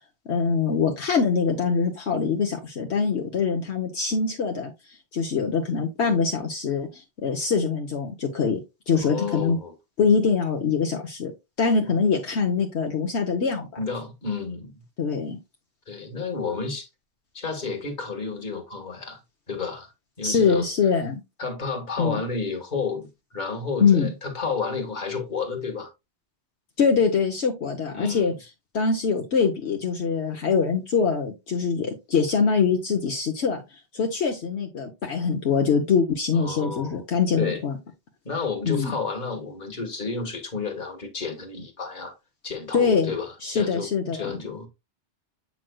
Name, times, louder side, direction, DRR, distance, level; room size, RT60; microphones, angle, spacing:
voice 1, 0.3-4.7 5.1-8.6 8.9-9.6 10.0-11.3 11.6-13.7 15.0-15.4 20.2-21.2 22.0-22.2 23.8-24.1 26.8-28.3 28.7-33.6 33.9-37.8 38.7-38.9 42.7-43.1 43.4-44.3, left 5 dB, 70° left, 1.3 m, -23 dB
voice 2, 8.9-9.7 13.8-14.7 15.9-16.9 17.3-19.2 19.5-19.9 20.2-20.7 21.4-23.1 23.3-25.9 27.9-28.3 36.3-37.0 37.4-37.6 38.2-42.1 42.4-44.7, left 4 dB, 45° left, 1.7 m, -31 dB
7.7 x 5.8 x 2.3 m
omnidirectional pair, 1.2 m